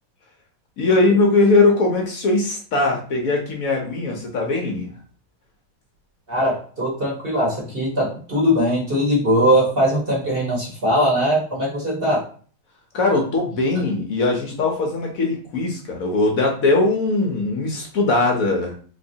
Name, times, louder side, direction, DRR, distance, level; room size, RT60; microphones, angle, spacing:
voice 1, 0.8-4.9 12.9-18.8, left 3 dB, 60° left, 1 dB, 0.9 m, -20 dB
voice 2, 6.3-12.2, equal, 35° right, -4 dB, 1.0 m, -20 dB
3.6 x 3.1 x 2.7 m, 0.42 s
omnidirectional pair, 2.2 m